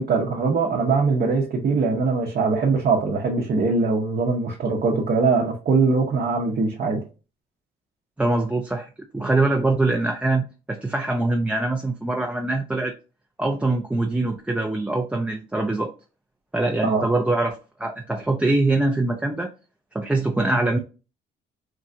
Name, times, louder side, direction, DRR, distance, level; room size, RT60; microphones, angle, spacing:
voice 1, 0.0-7.0 16.8-17.0, right 4 dB, 50° right, 0.7 m, -22 dB
voice 2, 8.2-12.9 13.4-15.9 16.5-19.5 19.9-20.8, right 2 dB, 5° right, 0.3 m, -23 dB
3.0 x 2.4 x 2.6 m
cardioid pair, 90°, 20 cm